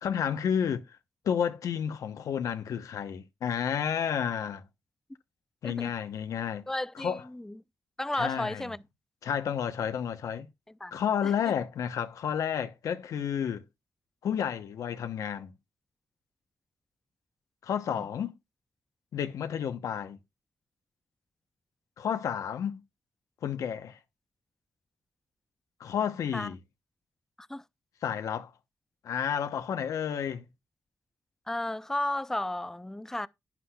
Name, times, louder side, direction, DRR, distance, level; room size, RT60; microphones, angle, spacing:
voice 1, 0.0-0.9 1.2-4.6 5.6-6.6 7.0-7.2 8.2-8.7 9.2-10.5 10.9-13.7 14.2-15.5 17.6-18.4 19.1-20.2 22.0-22.8 23.4-24.0 25.8-26.6 28.0-28.5 29.0-30.4, left 8 dB, 85° left, 0.9 m, -31 dB
voice 2, 6.7-7.6 8.0-8.8 10.8-11.5 17.9-18.0 26.3-26.5 27.5-27.6 31.5-33.3, left 1 dB, 10° left, 0.5 m, -34 dB
12.0 x 9.6 x 2.3 m
cardioid pair, 85°, 6 cm